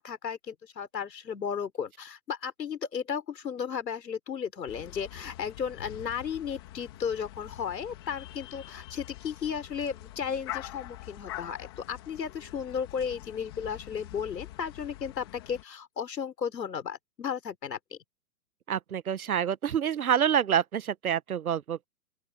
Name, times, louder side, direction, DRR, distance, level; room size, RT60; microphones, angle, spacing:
voice 1, 0.0-18.0, left 7 dB, 75° left, 4.1 m, -34 dB
sound 1, 4.7-15.6, left 14 dB, 15° left, 1.8 m, -45 dB
voice 2, 18.7-21.8, right 9 dB, 60° right, 1.0 m, -27 dB
open air
hypercardioid pair, 180°, 50 cm